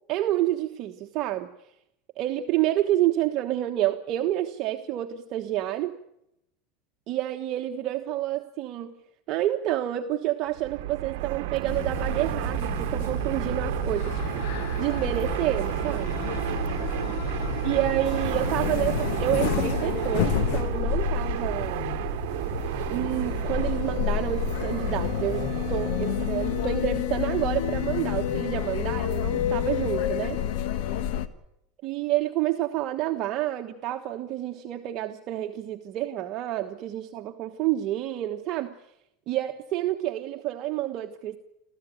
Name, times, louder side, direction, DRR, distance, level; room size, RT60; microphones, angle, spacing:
voice 1, 0.1-1.5 2.2-6.0 7.1-8.9 9.3-14.2 14.5-16.2 17.6-21.9 22.9-30.4 31.8-38.7 39.3-41.4, right 14 dB, 45° right, 4 dB, 1.3 m, -29 dB
Fixed-wing aircraft airplane, 10.5-26.9, right 15 dB, 70° right, 1.1 m, -31 dB
sound 1, 11.7-31.3, left 10 dB, 70° left, 1.5 m, -30 dB
28.5 x 14.0 x 9.4 m, 0.81 s
supercardioid pair, 130°, 0 cm